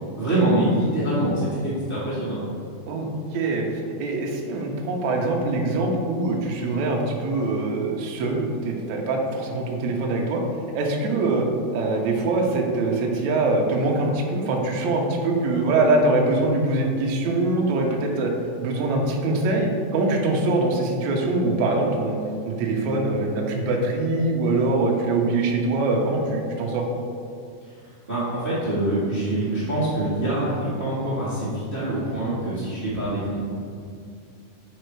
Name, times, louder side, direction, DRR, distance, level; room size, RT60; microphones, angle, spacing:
voice 1, 0.2-2.4 27.6-33.4, right 1 dB, 45° right, -10 dB, 0.7 m, -25 dB
voice 2, 2.9-10.4 10.7-11.5 11.7-18.3 18.6-22.2 22.4-26.9, right 2 dB, 85° right, 0 dB, 1.6 m, -23 dB
6.6 x 5.2 x 4.6 m, 2.3 s
omnidirectional pair, 4.5 m